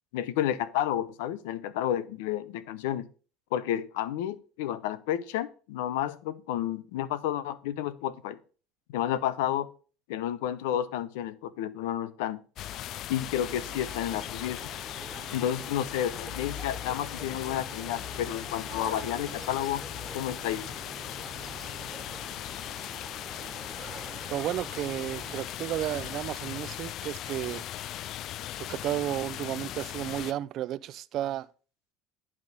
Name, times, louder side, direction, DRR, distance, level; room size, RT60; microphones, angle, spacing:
voice 1, 0.1-3.1 3.5-8.4 8.9-9.7 10.1-12.4 13.1-14.7 15.3-19.8 20.1-20.6, left 11 dB, 85° left, 0.7 m, -31 dB
sound 1, 12.6-30.3, left 13 dB, 55° left, 0.3 m, -38 dB
sound 2, 13.4-25.4, right 5 dB, 30° right, 1.5 m, -46 dB
voice 2, 24.3-27.7 28.5-31.5, right 13 dB, 55° right, 0.5 m, -33 dB
10.5 x 3.6 x 6.5 m
supercardioid pair, 100°, 0 cm